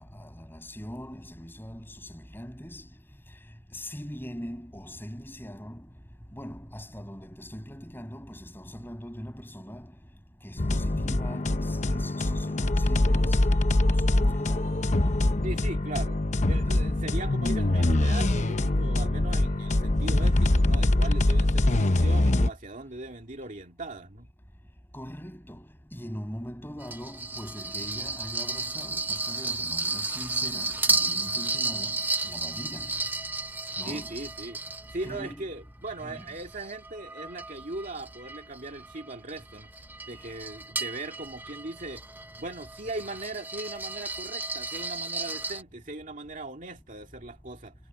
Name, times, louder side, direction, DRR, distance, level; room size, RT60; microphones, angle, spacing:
voice 1, 0.0-2.9 3.7-5.9 6.3-9.9 10.4-14.7 15.0-15.2 16.7-16.9 24.9-32.0 32.2-33.0 33.8-34.2 35.0-35.5 36.0-36.2, equal, 10° left, 6.5 m, -41 dB
sound 1, 10.6-22.5, left 1 dB, 35° left, 0.9 m, -24 dB
voice 2, 15.4-16.2 16.5-24.3 33.8-34.6 34.9-39.7 40.1-42.0 42.4-47.8, right 2 dB, 40° right, 2.4 m, -39 dB
sound 2, 26.8-35.3 35.9-45.6, right 3 dB, 10° right, 0.9 m, -33 dB
head